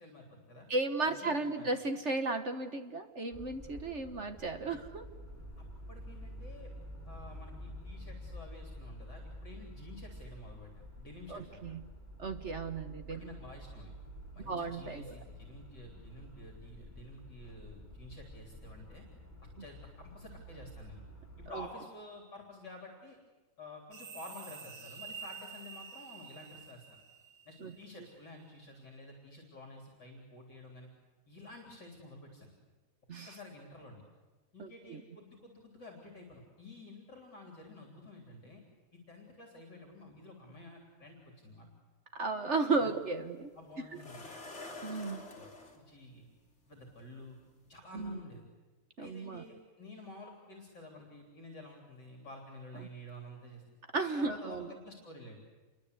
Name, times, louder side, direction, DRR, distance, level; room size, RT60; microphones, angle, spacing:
voice 1, 0.0-0.7 1.1-1.8 5.6-6.7 7.1-11.7 13.1-13.9 14.3-19.0 19.6-21.0 21.4-23.2 23.6-27.0 27.5-30.9 31.3-32.5 33.3-34.0 34.5-38.6 38.9-41.7 42.8-42.9 43.5-44.3 45.3-46.3 46.7-47.4 47.7-48.5 49.0-53.6 54.2-55.4, left 1 dB, 60° left, 1 dB, 4.2 m, -50 dB
voice 2, 0.7-5.1 11.3-11.9 12.2-13.2 14.5-15.1 21.5-21.6 27.6-27.7 33.1-33.3 34.6-35.0 42.1-43.5 43.9-44.0 44.8-45.2 47.9-48.2 49.0-49.4 53.9-54.7, right 3 dB, 40° right, 8 dB, 1.3 m, -34 dB
sound 1, 3.3-21.5, equal, 5° left, 3.4 m, -49 dB
sound 2, 23.9-28.1, right 6 dB, 75° right, 2.4 m, -48 dB
sound 3, 42.8-42.9 44.0-45.8 47.0-47.1 47.6-47.8, left 2 dB, 35° left, 3.5 m, -47 dB
28.0 x 23.0 x 8.3 m, 1.3 s
omnidirectional pair, 2.2 m